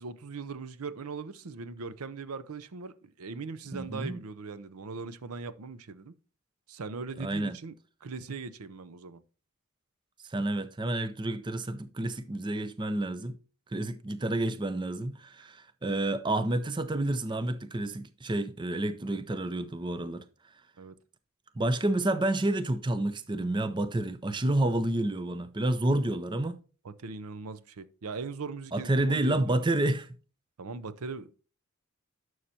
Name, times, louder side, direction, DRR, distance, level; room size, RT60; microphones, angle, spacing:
voice 1, 0.0-6.1 6.7-7.7 8.0-9.2 15.4-15.5 20.8-21.0 26.8-29.7 30.6-31.4, right 4 dB, 80° right, 0.6 m, -40 dB
voice 2, 3.7-4.2 7.2-7.6 10.2-13.4 13.7-20.2 21.6-26.6 28.7-30.1, right 1 dB, 20° right, 0.5 m, -29 dB
11.0 x 6.4 x 2.8 m
head